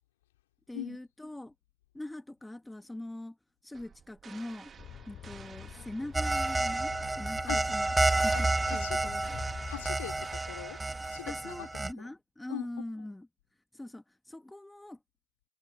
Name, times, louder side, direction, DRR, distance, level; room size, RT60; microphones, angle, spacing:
voice 1, 0.7-1.5 1.9-3.4 3.6-4.7 5.1-9.4 11.3-13.3 13.7-15.0, left 1 dB, 10° left, 1.3 m, -42 dB
sound 1, 3.7-11.6, right 6 dB, 35° right, 1.3 m, -53 dB
sound 2, 4.8-10.3, left 11 dB, 50° left, 2.6 m, -47 dB
sound 3, 6.1-11.9, right 2 dB, 15° right, 0.7 m, -30 dB
voice 2, 8.3-9.1 9.7-12.1 12.5-12.7, left 15 dB, 80° left, 2.4 m, -42 dB
hypercardioid pair, 70°, 0 cm